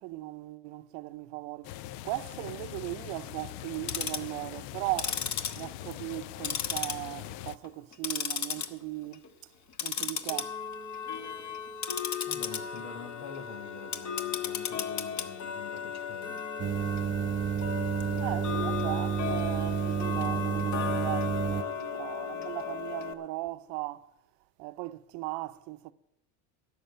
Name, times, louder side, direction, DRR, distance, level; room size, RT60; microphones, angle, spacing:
voice 1, 0.0-5.2 5.5-9.5 9.8-10.6 18.2-24.1 24.6-25.9, right 20 dB, 70° right, 0.7 m, -38 dB
sound 1, 1.6-7.6, left 14 dB, 70° left, 0.6 m, -42 dB
Tick-tock, 3.7-4.3 4.9-6.2 6.4-7.3 7.6-8.7 9.0-9.3 9.7-23.1, left 7 dB, 40° left, 1.2 m, -35 dB
voice 2, 12.3-16.4, left 5 dB, 85° left, 1.9 m, -45 dB
sound 2, 16.6-21.6, right 9 dB, 30° right, 0.4 m, -30 dB
12.5 x 6.6 x 9.8 m
supercardioid pair, 115°, 45 cm